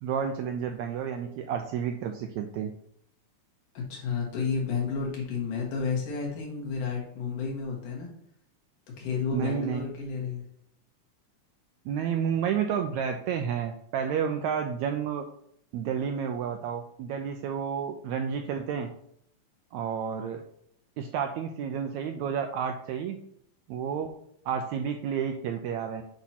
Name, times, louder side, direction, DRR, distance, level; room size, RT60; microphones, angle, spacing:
voice 1, 0.0-2.7 9.3-9.8 11.8-15.2 15.7-18.9 19.7-20.4 21.0-23.2 23.7-24.1 24.4-26.0, right 7 dB, 85° right, 5 dB, 1.6 m, -30 dB
voice 2, 3.7-8.1 9.0-10.4, left 5 dB, 80° left, -2 dB, 3.4 m, -31 dB
8.2 x 2.9 x 5.7 m, 0.69 s
omnidirectional pair, 3.7 m